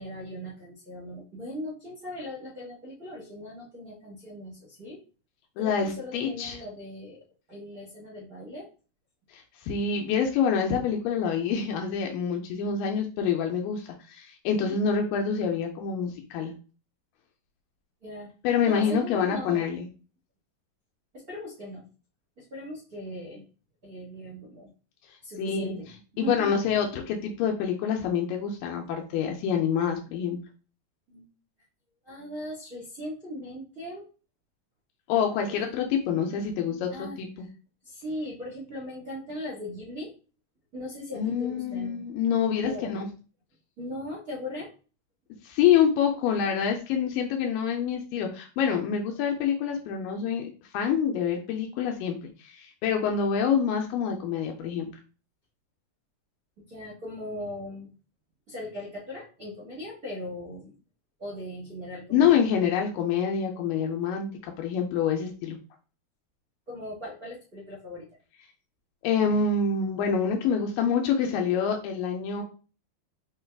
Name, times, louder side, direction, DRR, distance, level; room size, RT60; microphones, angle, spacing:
voice 1, 0.0-5.0 5.6-7.2 7.5-8.7 18.0-18.3 18.6-19.7 21.1-21.9 22.4-23.4 23.8-24.7 25.2-26.7 31.1-31.3 32.0-34.0 35.5-36.2 36.6-37.2 37.8-40.1 40.7-41.9 42.5-42.9 43.8-44.7 56.7-57.9 58.5-60.8 61.2-62.4 66.7-68.1, left 1 dB, 75° right, -5 dB, 0.8 m, -39 dB
voice 2, 5.6-6.6 9.3-16.5 18.4-19.9 25.4-25.7 26.2-30.4 35.1-37.5 41.1-43.1 45.4-50.5 50.7-54.9 62.1-65.6 69.0-72.4, left 7 dB, 85° left, 3 dB, 2.3 m, -26 dB
5.2 x 2.3 x 3.3 m, 0.35 s
omnidirectional pair, 3.9 m